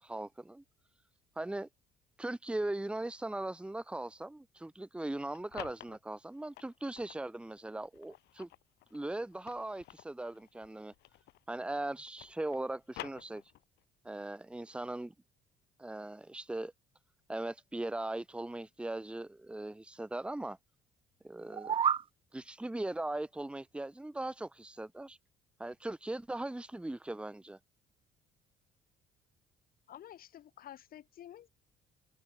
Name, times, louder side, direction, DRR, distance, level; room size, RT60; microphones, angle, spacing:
voice 1, 0.0-0.6 1.4-1.7 2.2-8.5 8.9-10.9 11.5-13.4 14.0-15.1 15.8-16.7 17.3-20.6 21.2-21.8 22.3-25.2 25.6-27.6, right 2 dB, 5° right, 1.1 m, -39 dB
sound 1, 5.1-7.2 7.8-11.6 11.8-13.8, left 17 dB, 80° left, 5.9 m, -51 dB
sound 2, 21.4-22.1, right 8 dB, 30° right, 0.4 m, -30 dB
voice 2, 29.9-31.5, left 11 dB, 60° left, 5.0 m, -50 dB
cardioid pair, 110°, 17 cm